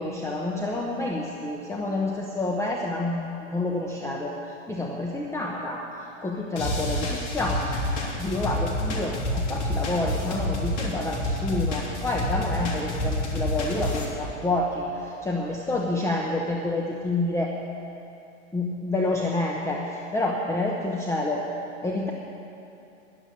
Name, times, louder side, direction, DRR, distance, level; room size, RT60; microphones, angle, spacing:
voice 1, 0.0-5.9 6.2-17.6 18.5-21.5 21.8-22.1, left 2 dB, 5° left, -1 dB, 1.0 m, -28 dB
sound 1, 6.6-14.1, left 1 dB, 45° left, 3.2 m, -28 dB
11.0 x 9.0 x 9.9 m, 2.8 s
hypercardioid pair, 120°, 37 cm